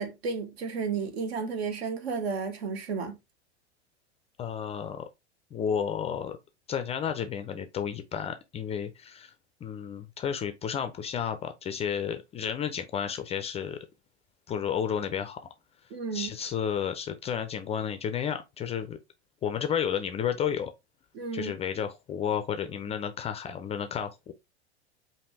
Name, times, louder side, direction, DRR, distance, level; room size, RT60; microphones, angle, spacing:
voice 1, 0.0-3.2 15.9-16.3 21.1-21.5, right 5 dB, 65° right, 1.2 m, -32 dB
voice 2, 4.4-5.0 5.5-6.4 6.7-9.3 9.6-13.8 14.5-15.4 16.1-19.0 19.4-20.7 21.3-24.3, left 8 dB, 20° left, 0.3 m, -32 dB
4.9 x 2.6 x 3.1 m
figure-of-eight pair, 85°, 34 cm